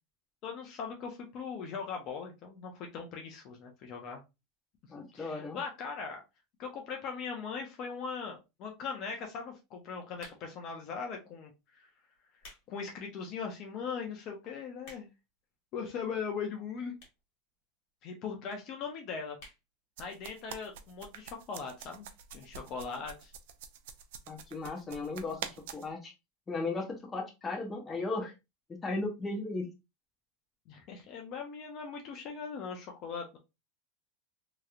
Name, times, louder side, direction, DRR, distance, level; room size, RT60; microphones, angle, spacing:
voice 1, 0.4-4.2 5.1-6.2 6.6-11.9 12.7-15.1 15.7-16.9 18.0-19.4 20.0-23.3 30.7-33.4, left 5 dB, 45° left, 2 dB, 0.8 m, -40 dB
voice 2, 4.9-5.6 24.3-26.1 26.5-28.3 28.8-29.7, left 3 dB, 15° left, 1 dB, 1.0 m, -36 dB
sound 1, 10.1-10.7 11.4-11.6 12.1-12.7 13.1-13.2 13.8-13.9 14.1-14.2 14.5-15.3 16.1-16.2 16.9-17.3 17.6-17.7 17.9-18.0 18.2-18.3 18.6-18.9 19.3-19.6 20.0-20.1 20.3-20.4, left 2 dB, 60° left, 1.6 m, -53 dB
sound 2, 20.0-25.9, right 8 dB, 75° right, 0.5 m, -45 dB
3.0 x 3.0 x 2.4 m, 0.25 s
supercardioid pair, 145°, 0 cm